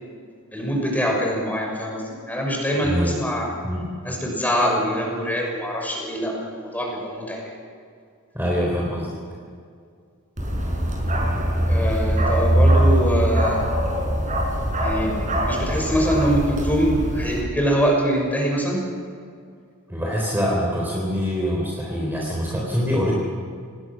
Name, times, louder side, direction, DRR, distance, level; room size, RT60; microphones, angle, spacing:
voice 1, 0.5-3.5 4.0-7.5 11.7-13.6 14.8-15.2 15.4-18.8, equal, 5° left, -1 dB, 6.3 m, -24 dB
voice 2, 2.8-3.2 3.6-4.0 8.3-9.1 19.9-23.1, equal, 10° right, -3 dB, 3.8 m, -24 dB
Bark, 10.4-17.4, right 1 dB, 35° right, 5.4 m, -22 dB
27.5 x 20.0 x 6.3 m, 2.2 s
head